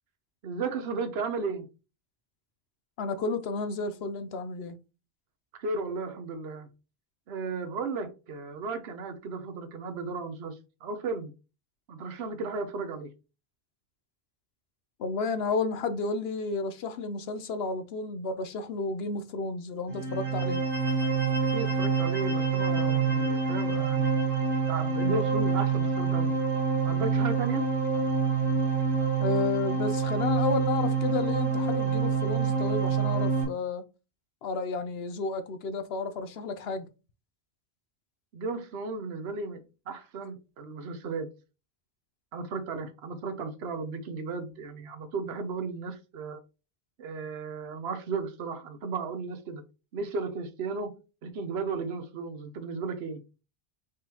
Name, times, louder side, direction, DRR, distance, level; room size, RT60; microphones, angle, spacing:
voice 1, 0.4-1.7 5.6-6.7 7.3-11.3 11.9-13.1 21.5-24.2 24.7-26.3 26.8-27.7 38.3-41.3 42.3-46.4 47.0-49.6 49.9-53.2, right 4 dB, 70° right, 1.0 m, -35 dB
voice 2, 3.0-4.8 15.0-20.6 29.2-33.8 34.4-36.9, left 4 dB, 70° left, 0.9 m, -32 dB
sound 1, 19.9-33.4, right 5 dB, 50° right, 2.1 m, -26 dB
5.0 x 3.7 x 2.8 m
omnidirectional pair, 1.1 m